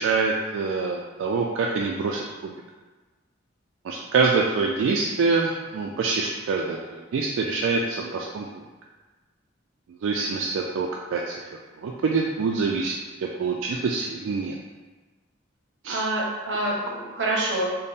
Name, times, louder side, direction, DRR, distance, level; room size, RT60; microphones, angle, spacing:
voice 1, 0.0-2.5 3.8-8.5 10.0-11.5 11.8-12.9 13.2-14.6 15.8-16.0, right 4 dB, 90° right, -1 dB, 0.3 m, -25 dB
voice 2, 15.9-17.7, right 1 dB, 65° right, -3 dB, 0.8 m, -26 dB
4.0 x 2.1 x 3.4 m, 1.3 s
head